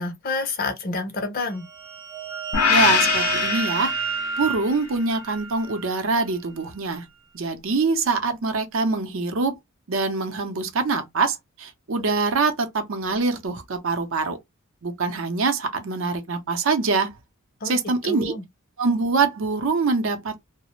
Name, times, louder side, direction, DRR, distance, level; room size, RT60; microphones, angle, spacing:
voice 1, 0.0-1.7 17.6-17.8 18.0-18.4, left 3 dB, 40° left, 0.5 m, -28 dB
sound 1, 1.6-6.1, right 6 dB, 10° right, 0.4 m, -31 dB
sound 2, 2.5-4.7, left 7 dB, 85° left, 0.5 m, -23 dB
voice 2, 2.7-3.9 4.4-7.0 7.3-9.5 9.9-14.4 14.8-17.2 17.6-18.3 18.8-20.4, right 4 dB, 65° right, 0.6 m, -24 dB
2.4 x 2.0 x 3.0 m
head